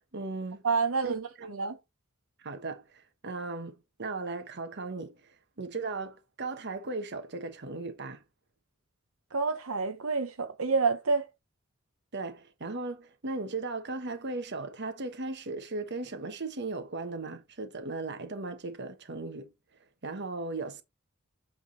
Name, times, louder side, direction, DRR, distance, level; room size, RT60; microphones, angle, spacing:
voice 1, 0.1-0.6 1.0-1.5 2.4-5.3 5.6-8.2 12.1-19.5 20.0-20.8, right 3 dB, 55° right, 1.3 m, -37 dB
voice 2, 0.6-1.8 9.3-11.3, right 4 dB, 90° right, 1.0 m, -28 dB
8.6 x 3.8 x 3.9 m
head